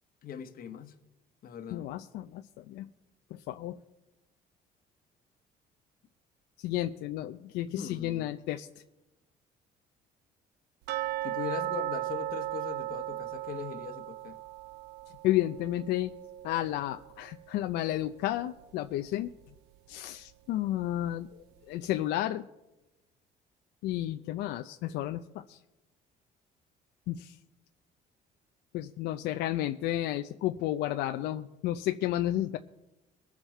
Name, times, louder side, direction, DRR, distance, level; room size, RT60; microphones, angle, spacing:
voice 1, 0.2-0.9 1.4-1.9 7.7-8.3 11.2-14.4, left 8 dB, 60° left, 1.2 m, -40 dB
voice 2, 1.7-2.9 3.3-3.8 6.6-8.7 15.2-16.1 16.4-19.3 19.9-22.5 23.8-25.6 27.1-27.4 28.7-32.6, left 14 dB, 85° left, 0.6 m, -32 dB
sound 1, 10.9-17.7 18.0-18.1 18.6-18.7 19.3-19.4, right 15 dB, 90° right, 0.5 m, -37 dB
22.0 x 7.3 x 4.4 m
cardioid pair, 110°, 17 cm